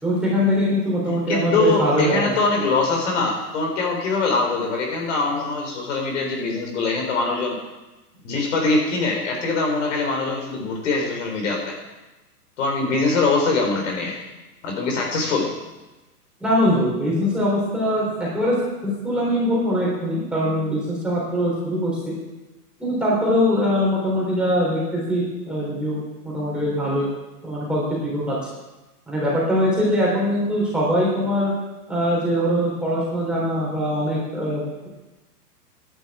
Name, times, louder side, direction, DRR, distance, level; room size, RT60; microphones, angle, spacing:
voice 1, 0.0-2.3 16.4-22.1 22.8-27.1 27.4-28.4 29.1-31.5 31.9-34.9, equal, ahead, -7 dB, 3.3 m, -22 dB
voice 2, 1.3-7.6 8.2-11.7 12.6-14.2 14.6-15.5, left 3 dB, 50° left, 1 dB, 4.5 m, -23 dB
11.5 x 8.8 x 8.7 m, 1.1 s
hypercardioid pair, 160°, 47 cm